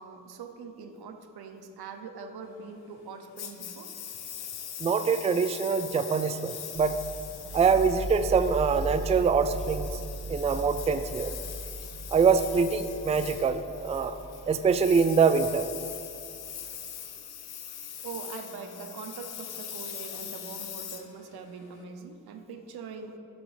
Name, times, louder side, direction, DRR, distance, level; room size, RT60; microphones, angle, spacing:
voice 1, 0.0-3.9 7.4-7.6 13.3-13.4 18.0-23.2, right 5 dB, 80° right, 6 dB, 0.7 m, -42 dB
Engine, 3.4-21.8, left 9 dB, 80° left, 0.6 m, -42 dB
voice 2, 4.8-7.0 7.5-10.0 10.3-11.3 12.1-14.1 14.5-15.7, right 5 dB, 20° right, 10 dB, 0.3 m, -24 dB
sound 1, 6.7-16.6, right 1 dB, 60° right, 1.2 m, -39 dB
6.0 x 3.7 x 6.0 m, 2.5 s
supercardioid pair, 40°, 37 cm